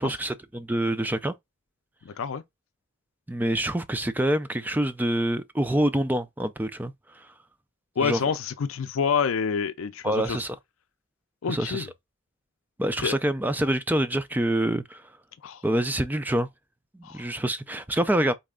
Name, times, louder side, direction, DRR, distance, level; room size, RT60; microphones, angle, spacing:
voice 1, 0.0-1.3 3.3-6.9 8.0-8.2 10.0-10.6 11.5-11.9 12.8-15.0 15.6-16.5 17.1-18.3, right 1 dB, 10° right, 0.3 m, -26 dB
voice 2, 2.1-2.4 8.0-10.4 11.4-11.9 13.0-13.2 15.4-15.6 17.0-17.2, left 6 dB, 80° left, 0.4 m, -27 dB
4.2 x 3.2 x 3.6 m
head